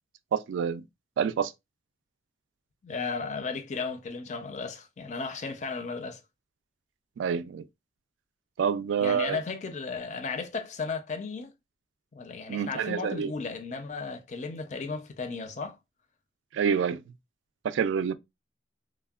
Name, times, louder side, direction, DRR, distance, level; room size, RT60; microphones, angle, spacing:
voice 1, 0.3-0.8 1.2-1.5 7.2-7.6 8.6-9.4 12.5-13.3 16.5-17.0 17.6-18.1, right 7 dB, 80° right, 0.3 m, -27 dB
voice 2, 2.8-6.2 9.0-11.5 12.1-15.8, left 4 dB, 40° left, 0.4 m, -35 dB
3.4 x 2.1 x 2.3 m
head